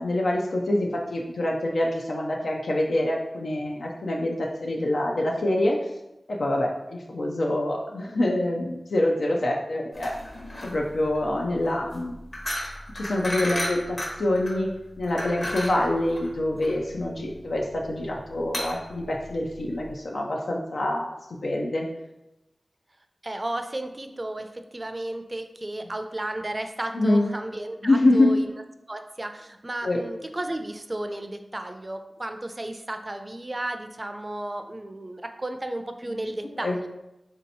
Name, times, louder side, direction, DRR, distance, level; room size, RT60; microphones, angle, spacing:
voice 1, 0.0-5.8 6.3-10.1 10.6-12.2 12.9-21.1 21.4-21.9 26.9-27.2 27.8-28.3 29.8-30.0 36.6-36.8, left 1 dB, 85° left, -1 dB, 0.4 m, -25 dB
sound 1, 9.9-19.9, left 1 dB, 45° left, 0.9 m, -34 dB
voice 2, 23.2-28.5 28.9-36.9, right 1 dB, 40° right, 6 dB, 0.4 m, -33 dB
3.3 x 2.8 x 4.0 m, 0.92 s
cardioid pair, 40°, 0 cm